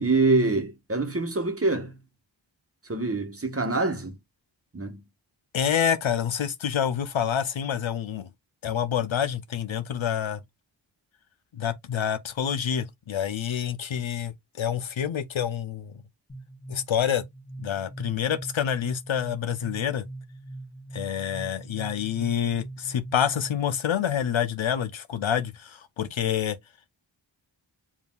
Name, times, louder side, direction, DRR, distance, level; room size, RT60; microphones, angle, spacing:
voice 1, 0.0-2.0 2.8-4.2 4.7-5.0, right 3 dB, 30° right, 1.1 m, -25 dB
voice 2, 5.5-8.3 8.6-10.4 11.5-14.3 14.6-16.0 16.7-17.2 17.6-20.1 20.9-26.6, left 8 dB, 80° left, 0.8 m, -27 dB
sound 1, 16.3-23.9, right 2 dB, 15° left, 1.5 m, -42 dB
7.2 x 2.7 x 2.3 m
wide cardioid pair, 55°, 46 cm